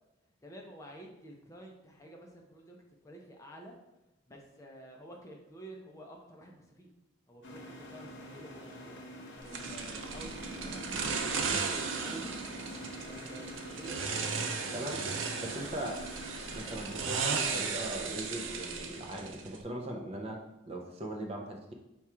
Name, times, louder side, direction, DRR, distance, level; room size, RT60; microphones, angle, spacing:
voice 1, 0.4-2.8 3.0-3.8 4.3-6.9 7.3-9.0 9.4-12.3 13.0-14.2 15.3-16.3, right 1 dB, 15° left, 0 dB, 0.5 m, -50 dB
sound 1, 7.4-17.7, equal, 70° left, 0.8 m, -46 dB
sound 2, 9.5-19.6, right 5 dB, 85° right, 0.5 m, -36 dB
voice 2, 14.7-16.0 16.5-21.7, right 1 dB, 30° right, 2 dB, 0.5 m, -40 dB
4.8 x 2.3 x 4.3 m, 0.93 s
head